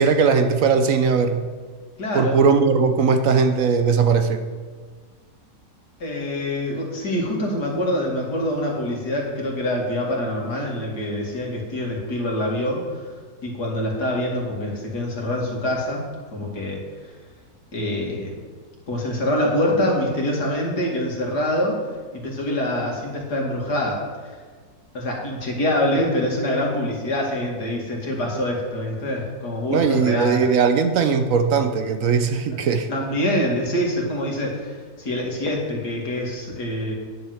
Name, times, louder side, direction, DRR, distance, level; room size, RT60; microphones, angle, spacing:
voice 1, 0.0-1.5 2.1-4.4 29.7-32.9, right 5 dB, 65° right, 9 dB, 1.1 m, -19 dB
voice 2, 2.0-2.4 6.0-13.0 13.4-16.0 16.3-16.8 17.7-18.3 18.9-21.8 22.1-24.0 24.9-30.4 32.9-36.9, left 1 dB, 85° left, -1 dB, 3.0 m, -25 dB
10.5 x 7.0 x 8.0 m, 1.5 s
omnidirectional pair, 1.7 m